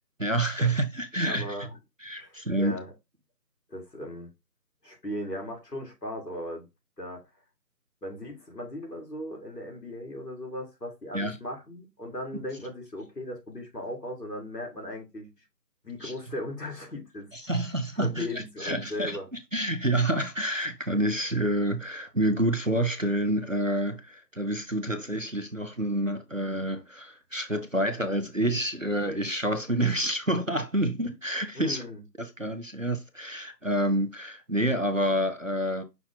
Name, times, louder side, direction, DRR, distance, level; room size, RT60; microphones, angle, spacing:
voice 1, 0.2-1.6 2.0-2.8 11.1-11.4 16.0-16.1 17.3-19.2 19.5-31.8 32.2-35.8, right 1 dB, 55° right, 0.5 m, -28 dB
voice 2, 1.2-1.8 2.2-2.9 3.7-4.3 4.8-6.6 7.0-7.2 8.0-15.3 15.8-17.3 18.0-19.2 31.5-32.0, left 1 dB, 70° left, 2.3 m, -37 dB
5.8 x 2.3 x 3.9 m
figure-of-eight pair, 180°, 49 cm